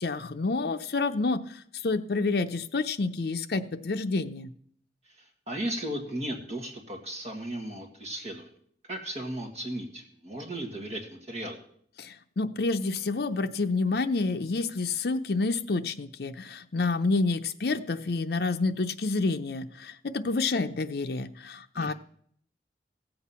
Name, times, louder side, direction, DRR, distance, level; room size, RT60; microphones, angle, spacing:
voice 1, 0.0-1.4 1.8-4.5 12.0-21.9, left 3 dB, 65° left, 6 dB, 0.6 m, -28 dB
voice 2, 5.5-8.5 8.8-11.6 21.8-21.9, right 1 dB, 40° right, 2 dB, 1.9 m, -35 dB
15.5 x 7.9 x 5.7 m, 0.64 s
head